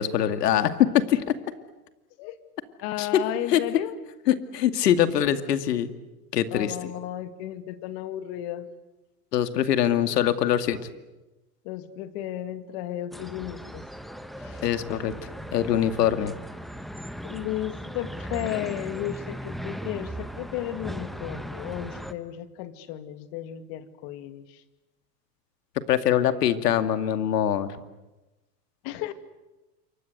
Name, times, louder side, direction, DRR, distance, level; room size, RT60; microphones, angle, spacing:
voice 1, 0.0-1.3 3.0-3.1 3.5-3.6 4.3-5.9 6.3-6.7 9.3-10.8 14.6-16.3 25.9-27.7, left 10 dB, 80° left, 10 dB, 2.4 m, -23 dB
voice 2, 2.8-4.0 6.5-8.7 11.6-13.8 14.4-14.6 16.2-16.3 17.2-24.6 28.8-29.1, left 13 dB, 50° left, 11 dB, 2.4 m, -34 dB
sound 1, 13.1-22.1, equal, ahead, 1.1 m, -38 dB
28.0 x 24.5 x 8.0 m, 1.1 s
hypercardioid pair, 125°, 47 cm